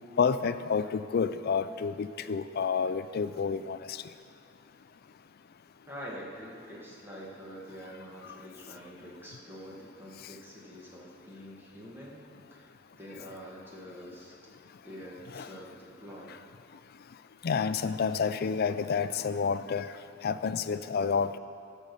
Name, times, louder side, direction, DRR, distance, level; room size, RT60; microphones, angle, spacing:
voice 1, 0.2-4.0 15.3-15.5 17.4-19.9 20.2-21.4, left 6 dB, 50° left, 12 dB, 0.4 m, -29 dB
voice 2, 5.9-12.2 12.5-14.3 14.8-16.4, equal, 10° right, -5 dB, 1.6 m, -46 dB
15.5 x 6.3 x 5.3 m, 2.5 s
head